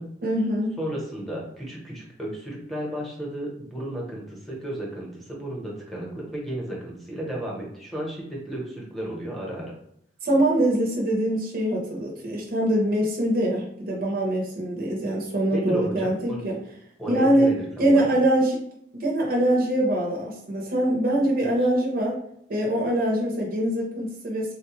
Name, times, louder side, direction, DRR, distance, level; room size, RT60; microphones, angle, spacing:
voice 1, 0.2-0.8 10.2-16.6 17.1-17.5 17.8-18.6 18.9-22.2 22.5-24.5, right 1 dB, 50° right, -2 dB, 0.6 m, -23 dB
voice 2, 0.8-9.7 15.5-16.4 17.0-18.1, right 1 dB, ahead, -4 dB, 0.9 m, -33 dB
3.7 x 2.2 x 2.9 m, 0.71 s
head